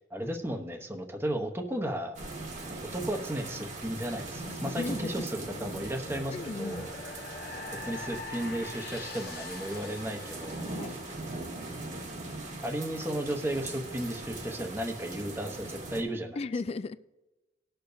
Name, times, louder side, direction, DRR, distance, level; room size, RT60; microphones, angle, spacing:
voice 1, 0.1-2.2 2.9-6.9 7.8-11.0 12.6-16.4, right 1 dB, 15° right, 4 dB, 0.9 m, -34 dB
sound 1, 2.1-16.0, right 2 dB, 40° right, 1.3 m, -40 dB
sound 2, 2.9-11.8, left 3 dB, 55° left, 0.9 m, -46 dB
voice 2, 4.8-5.1 6.3-6.9 10.8-11.0 16.4-17.0, left 3 dB, 35° left, 14 dB, 0.3 m, -35 dB
19.0 x 6.8 x 2.7 m, 1.1 s
head